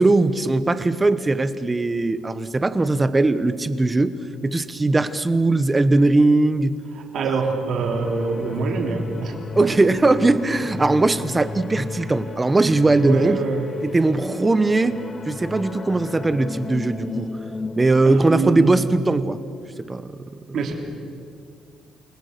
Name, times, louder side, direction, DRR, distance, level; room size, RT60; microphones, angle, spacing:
voice 1, 0.0-4.1 4.4-6.8 8.4-8.5 9.6-13.4 13.8-15.0 15.3-17.3 17.8-19.4 19.9-20.2, right 2 dB, 15° right, 13 dB, 0.9 m, -19 dB
voice 2, 6.9-9.3 9.6-9.8 13.0-13.7 18.0-18.8 20.5-20.7, right 4 dB, 55° right, 2 dB, 3.2 m, -25 dB
sound 1, 7.8-17.9, left 4 dB, 25° left, 0.9 m, -34 dB
29.0 x 21.5 x 6.7 m, 2.2 s
cardioid pair, 165°, 0 cm